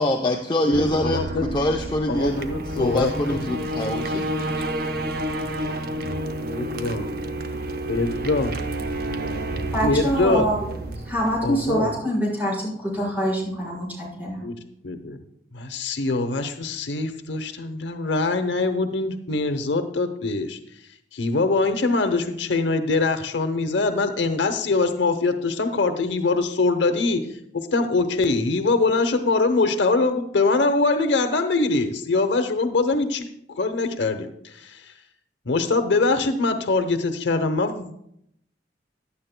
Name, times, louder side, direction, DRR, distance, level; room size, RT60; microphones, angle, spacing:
voice 1, 0.0-2.3 2.7-4.2, left 1 dB, 25° left, 2 dB, 0.6 m, -24 dB
voice 2, 0.6-1.5 2.1-3.6 6.5-7.1 7.9-8.6 9.8-10.5 11.4-11.9 14.4-14.6 14.8-15.2 15.5-20.6 21.1-27.3 27.5-34.8 35.5-37.9, left 3 dB, 85° left, 8 dB, 0.8 m, -23 dB
sound 1, 0.7-12.0, right 1 dB, 60° right, 0.8 m, -30 dB
voice 3, 9.7-10.6 11.1-14.4, equal, 10° right, -6 dB, 4.7 m, -25 dB
16.0 x 11.5 x 2.2 m, 0.74 s
head